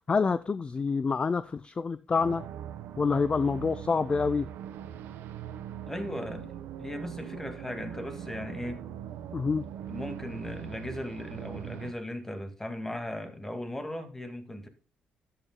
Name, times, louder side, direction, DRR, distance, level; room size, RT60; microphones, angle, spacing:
voice 1, 0.0-2.4 3.0-4.5 9.3-9.7, left 5 dB, 30° left, 0.4 m, -27 dB
sound 1, 2.1-11.9, right 10 dB, 85° right, 1.0 m, -41 dB
voice 2, 5.9-6.5 6.8-8.8 9.9-14.7, left 1 dB, 10° left, 2.0 m, -37 dB
13.0 x 9.0 x 2.2 m
cardioid pair, 85°, 4 cm